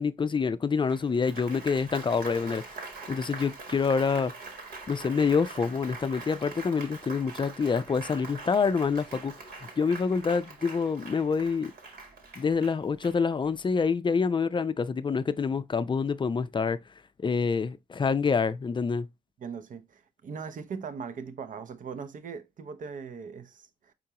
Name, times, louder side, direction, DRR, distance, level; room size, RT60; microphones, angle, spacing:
voice 1, 0.0-2.6 3.1-4.3 4.9-9.3 9.8-11.7 12.4-16.8 17.2-19.1, left 5 dB, 30° left, 0.4 m, -27 dB
Applause, 0.9-13.6, right 4 dB, 70° right, 1.4 m, -43 dB
voice 2, 19.4-23.9, right 6 dB, 55° right, 0.6 m, -40 dB
4.5 x 3.7 x 2.8 m
hypercardioid pair, 45°, 16 cm